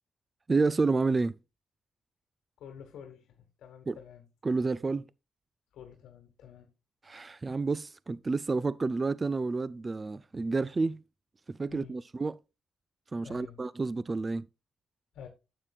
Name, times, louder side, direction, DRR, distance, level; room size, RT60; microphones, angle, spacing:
voice 1, 0.5-1.4 3.9-4.0 4.4-5.1 7.0-11.0 11.5-12.4 13.1-14.5, right 3 dB, 30° right, 0.3 m, -30 dB
voice 2, 2.6-4.2 5.7-6.7 11.7-12.0 13.2-13.6 15.1-15.3, left 8 dB, 80° left, 1.2 m, -49 dB
9.6 x 7.6 x 2.3 m
cardioid pair, 70°, 0 cm